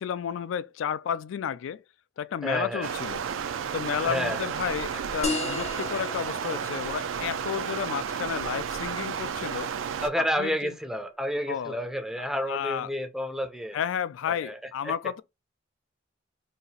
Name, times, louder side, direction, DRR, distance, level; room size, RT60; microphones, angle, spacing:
voice 1, 0.0-1.8 2.2-3.2 3.7-9.7 10.2-10.7 11.5-11.8 12.5-12.9 13.7-15.2, left 8 dB, 70° left, 0.3 m, -32 dB
voice 2, 2.4-2.9 4.1-4.5 10.0-13.8 14.3-14.6 14.8-14.9, equal, ahead, 0.4 m, -30 dB
Stream, 2.8-10.1, right 7 dB, 80° right, 0.4 m, -32 dB
sound 1, 5.2-10.3, left 3 dB, 35° left, 0.7 m, -37 dB
2.8 x 2.4 x 3.9 m
head